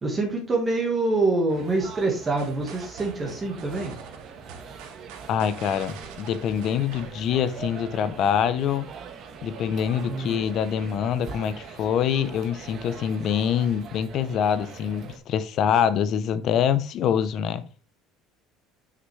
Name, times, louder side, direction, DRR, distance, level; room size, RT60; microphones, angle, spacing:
voice 1, 0.0-4.0 10.1-10.4, right 3 dB, 15° right, 1.5 m, -25 dB
sound 1, 1.5-15.2, right 6 dB, 35° right, 1.3 m, -42 dB
sound 2, 2.4-7.6, right 6 dB, 75° right, 2.2 m, -45 dB
voice 2, 5.3-8.9 9.4-17.6, left 8 dB, 40° left, 0.7 m, -25 dB
9.7 x 5.8 x 3.3 m
cardioid pair, 180°, 0 cm